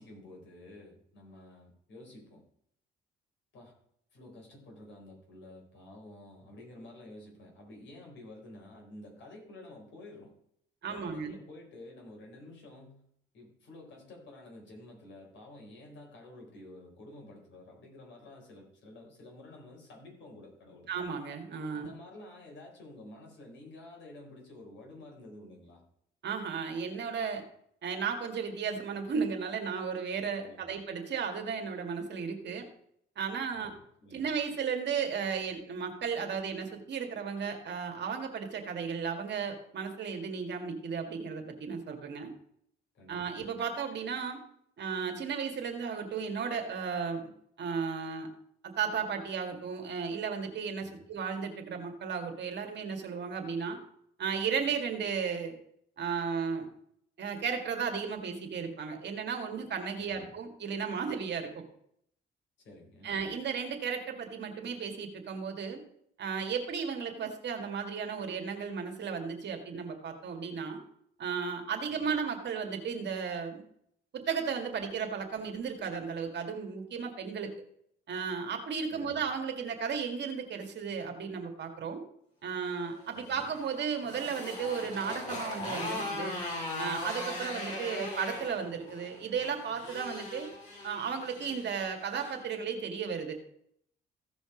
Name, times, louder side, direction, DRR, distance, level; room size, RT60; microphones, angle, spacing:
voice 1, 0.0-2.4 3.5-3.7 4.1-10.3 10.8-13.0 13.3-20.9 21.7-25.8 30.4-30.7 33.5-33.7 34.0-34.2 42.9-43.2 50.8-51.0 59.9-60.3 62.6-63.1 71.9-72.1 78.9-79.2 83.1-83.5, left 1 dB, 70° left, 0 dB, 4.4 m, -50 dB
voice 2, 10.8-11.3 20.9-21.9 26.2-27.4 27.8-32.7 33.2-33.7 34.1-42.3 43.1-44.4 44.8-47.3 47.6-48.3 48.6-53.8 54.2-55.5 56.0-56.7 57.2-61.6 63.0-65.8 66.2-70.8 71.2-73.6 74.1-77.5 78.1-82.0 82.4-86.4 86.8-90.5 90.8-93.4, right 6 dB, 60° right, 4 dB, 1.9 m, -34 dB
Motorcycle, 83.0-92.4, left 2 dB, 35° left, 4.6 m, -39 dB
15.5 x 5.2 x 5.0 m, 0.70 s
cardioid pair, 90°, 20 cm